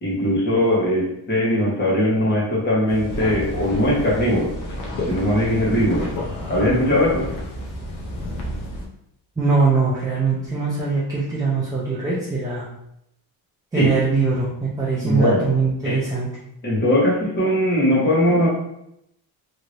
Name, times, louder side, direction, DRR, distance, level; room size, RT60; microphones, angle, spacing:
voice 1, 0.0-4.5 5.1-6.1 6.5-7.3 13.7-13.9 15.0-15.4 15.8-16.0 16.6-18.5, left 1 dB, 25° left, -5 dB, 1.1 m, -20 dB
sound 1, 2.9-8.9, left 1 dB, 50° left, 0.7 m, -30 dB
voice 2, 9.4-12.7 13.7-16.3, right 4 dB, 10° right, -7 dB, 0.4 m, -22 dB
3.1 x 2.8 x 2.5 m, 0.79 s
cardioid pair, 160°, 40 cm